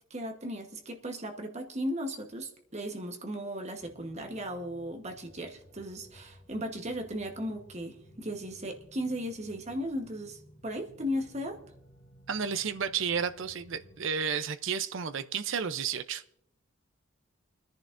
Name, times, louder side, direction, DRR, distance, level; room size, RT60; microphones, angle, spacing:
voice 1, 0.1-11.6, equal, 30° right, 1.1 m, -36 dB
sound 1, 3.8-14.0, equal, 75° left, 1.8 m, -57 dB
voice 2, 12.3-16.2, right 7 dB, 60° right, 0.5 m, -32 dB
29.0 x 10.5 x 2.5 m
head